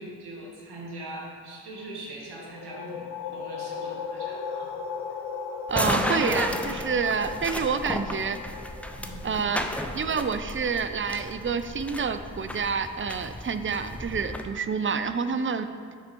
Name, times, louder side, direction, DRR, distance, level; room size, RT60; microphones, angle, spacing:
voice 1, 0.0-4.7 9.0-9.3, right 1 dB, 70° right, -3 dB, 1.9 m, -41 dB
sound 1, 2.4-11.8, left 6 dB, 80° left, 0.7 m, -38 dB
sound 2, 5.7-14.4, left 1 dB, 5° left, 0.7 m, -33 dB
voice 2, 5.7-8.4 9.2-9.7 9.9-15.7, right 5 dB, 30° right, 11 dB, 0.6 m, -28 dB
9.5 x 4.3 x 5.4 m, 2.2 s
supercardioid pair, 45°, 40 cm